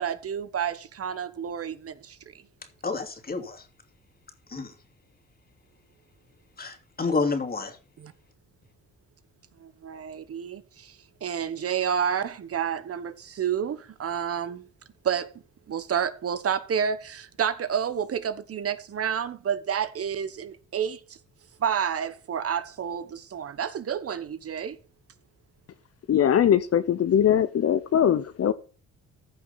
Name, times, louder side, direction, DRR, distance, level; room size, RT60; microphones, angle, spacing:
voice 1, 0.0-2.2 8.0-8.1 9.6-14.6 15.0-15.3 15.7-21.2 21.6-24.8, right 8 dB, 50° right, 1.2 m, -30 dB
voice 2, 2.8-3.6 4.5-4.7 6.6-7.8, left 4 dB, 30° left, 2.9 m, -29 dB
voice 3, 26.1-28.5, left 9 dB, 50° left, 0.9 m, -21 dB
15.0 x 5.8 x 4.1 m
cardioid pair, 90°, 30 cm